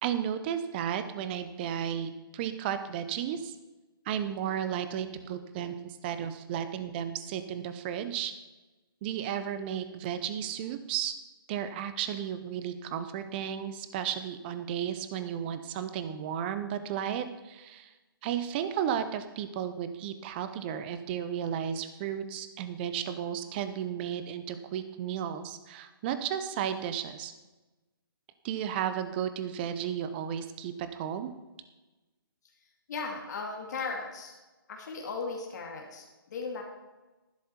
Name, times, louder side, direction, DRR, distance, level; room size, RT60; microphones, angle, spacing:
voice 1, 0.0-3.5 4.1-8.3 9.0-11.1 11.5-17.9 18.2-27.3 28.4-31.3, right 9 dB, 25° right, 10 dB, 0.8 m, -33 dB
voice 2, 32.9-34.3 34.7-36.6, left 4 dB, 50° left, 1 dB, 2.2 m, -37 dB
11.5 x 11.5 x 4.4 m, 1.1 s
hypercardioid pair, 150°, 12 cm